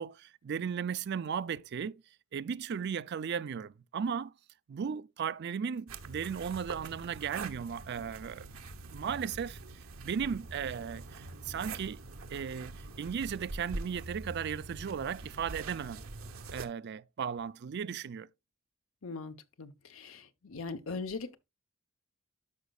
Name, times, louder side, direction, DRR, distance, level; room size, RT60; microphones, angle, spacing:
voice 1, 0.0-2.0 2.3-4.3 4.7-8.5 8.9-9.6 10.0-12.0 12.3-16.0 16.5-18.3, right 7 dB, 55° right, 0.4 m, -36 dB
sound 1, 5.9-16.7, right 3 dB, 85° right, 0.9 m, -44 dB
voice 2, 19.0-21.3, left 4 dB, 75° left, 0.9 m, -40 dB
13.0 x 5.2 x 2.3 m
head